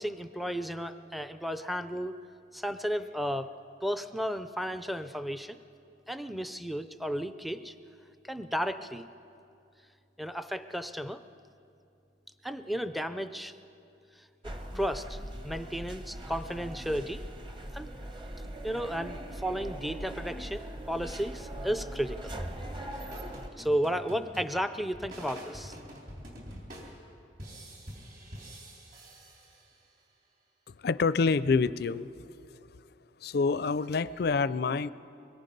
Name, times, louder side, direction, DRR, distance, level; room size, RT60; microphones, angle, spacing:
voice 1, 0.0-2.2 2.5-3.5 3.8-5.6 6.1-7.7 8.2-9.1 10.2-11.2 12.4-13.5 14.7-17.2 17.7-17.9 18.6-22.3 23.6-25.8, equal, ahead, 10 dB, 0.4 m, -33 dB
sound 1, 14.4-23.5, right 1 dB, 25° right, 1.1 m, -41 dB
sound 2, 22.6-30.0, equal, 50° right, 4.0 m, -47 dB
voice 2, 30.7-32.1 33.2-34.9, left 4 dB, 55° left, 16 dB, 0.4 m, -27 dB
24.5 x 21.5 x 5.3 m, 2.6 s
head